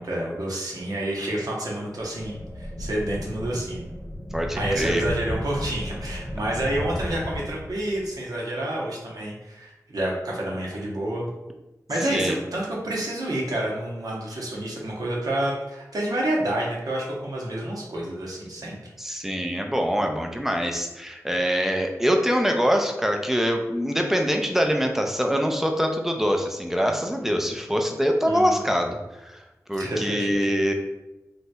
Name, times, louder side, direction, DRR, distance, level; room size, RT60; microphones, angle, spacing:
voice 1, 0.0-3.9 4.6-11.3 11.9-18.8 28.2-28.6 29.8-30.4, right 1 dB, 75° right, -3 dB, 0.7 m, -29 dB
sound 1, 2.0-8.1, equal, 30° left, 0.7 m, -34 dB
voice 2, 4.3-5.0 12.1-12.4 19.0-29.3 29.7-30.7, equal, 5° right, 3 dB, 0.4 m, -24 dB
3.1 x 2.7 x 2.2 m, 1.0 s
wide cardioid pair, 80°, 6 cm